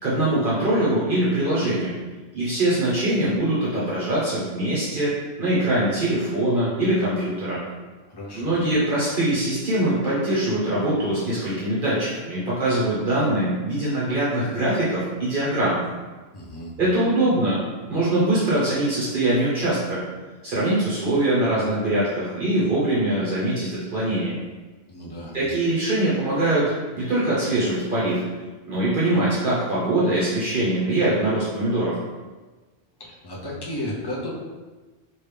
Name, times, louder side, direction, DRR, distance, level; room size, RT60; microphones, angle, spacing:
voice 1, 0.0-1.9 2.3-7.6 8.3-15.8 16.8-20.0 20.4-24.4 25.3-28.2 28.7-32.0, right 1 dB, 55° right, -8 dB, 0.9 m, -23 dB
voice 2, 8.1-8.6 16.3-16.7 24.9-25.3 33.0-34.3, left 1 dB, 30° left, -4 dB, 0.5 m, -33 dB
3.1 x 2.7 x 3.3 m, 1.3 s
omnidirectional pair, 1.1 m